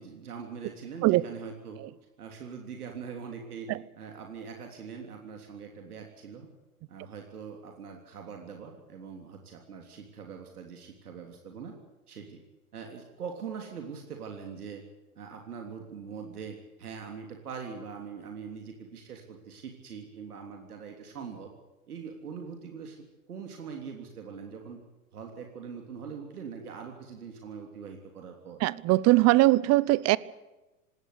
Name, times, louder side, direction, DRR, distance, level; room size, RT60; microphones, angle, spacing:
voice 1, 0.0-1.8 2.2-6.5 6.9-11.8 12.1-12.4 12.7-14.8 15.1-21.5 21.9-23.0 23.3-24.8 25.1-28.6, right 6 dB, 80° right, 3.4 m, -42 dB
voice 2, 28.6-30.2, right 19 dB, 35° right, 0.8 m, -21 dB
20.0 x 18.0 x 8.4 m
hypercardioid pair, 100°, 44 cm